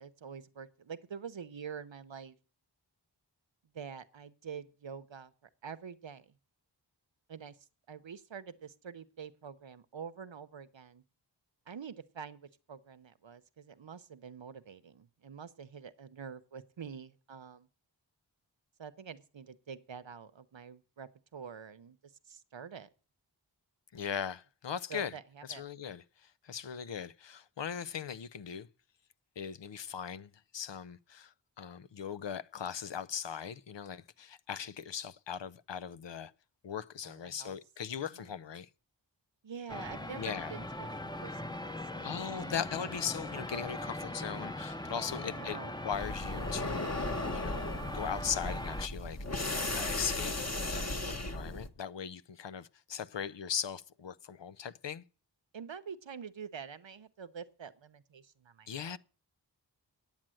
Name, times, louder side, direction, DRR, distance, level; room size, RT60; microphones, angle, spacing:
voice 1, 0.0-2.4 3.7-6.4 7.3-11.0 11.7-17.7 18.8-22.9 24.9-25.6 37.0-37.6 37.9-38.3 39.4-42.7 45.1-45.8 55.5-59.0, right 6 dB, 90° right, 0.8 m, -47 dB
voice 2, 23.9-25.1 25.5-26.0 26.4-28.7 29.4-36.3 36.6-38.7 40.2-40.5 42.0-45.6 45.8-47.7 47.9-49.4 49.7-50.3 50.6-55.0 58.7-59.0, left 8 dB, 75° left, 0.6 m, -39 dB
sound 1, 39.7-48.9, left 1 dB, 10° left, 0.7 m, -40 dB
sound 2, 45.9-51.7, left 2 dB, 35° left, 1.1 m, -36 dB
9.0 x 8.9 x 7.6 m
wide cardioid pair, 50°, 44 cm